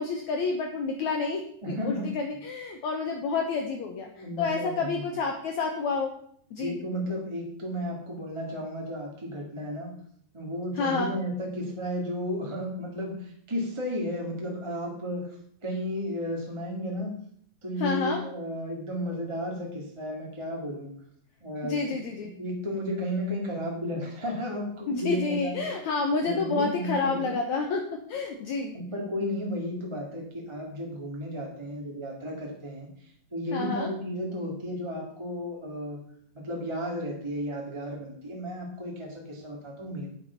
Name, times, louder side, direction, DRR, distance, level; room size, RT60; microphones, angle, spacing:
voice 1, 0.0-6.1 6.5-6.8 10.8-11.1 17.8-18.2 21.6-22.3 24.9-28.7 33.5-33.9, left 4 dB, 65° left, 3 dB, 2.1 m, -29 dB
voice 2, 1.6-2.1 4.2-5.1 6.6-9.9 10.3-15.4 15.6-17.1 17.6-20.9 21.4-25.7 26.2-27.3 28.7-36.0 36.3-40.1, equal, 15° right, -1 dB, 1.3 m, -33 dB
9.4 x 8.6 x 5.8 m, 0.64 s
omnidirectional pair, 4.1 m